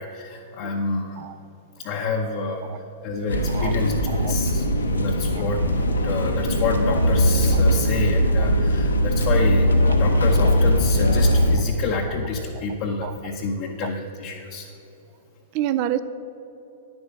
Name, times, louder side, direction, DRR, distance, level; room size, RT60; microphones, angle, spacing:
voice 1, 0.0-1.3 1.8-5.6 6.0-14.7, left 3 dB, 40° left, 0 dB, 0.8 m, -28 dB
sound 1, 3.3-11.6, equal, 75° left, 1.0 m, -20 dB
voice 2, 4.1-4.4 5.3-5.4 7.5-7.6 8.4-8.5 9.9-10.0 12.6-12.7 13.0-13.1 13.8-13.9 15.5-16.0, right 12 dB, 40° right, 13 dB, 0.4 m, -28 dB
10.5 x 7.2 x 5.1 m, 3.0 s
figure-of-eight pair, 105°, 0 cm